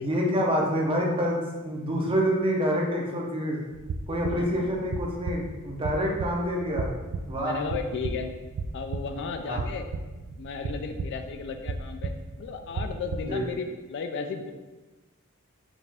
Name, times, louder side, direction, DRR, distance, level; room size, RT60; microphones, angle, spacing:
voice 1, 0.0-3.6 4.1-6.9 7.2-7.6 9.5-9.6 13.2-13.4, equal, 25° right, -1 dB, 0.6 m, -27 dB
sound 1, 3.7-13.5, right 3 dB, 80° right, 0.3 m, -35 dB
voice 2, 4.3-4.8 7.4-8.3 8.7-9.9 10.4-14.5, left 5 dB, 55° left, 6 dB, 0.3 m, -34 dB
5.1 x 2.5 x 3.3 m, 1.2 s
head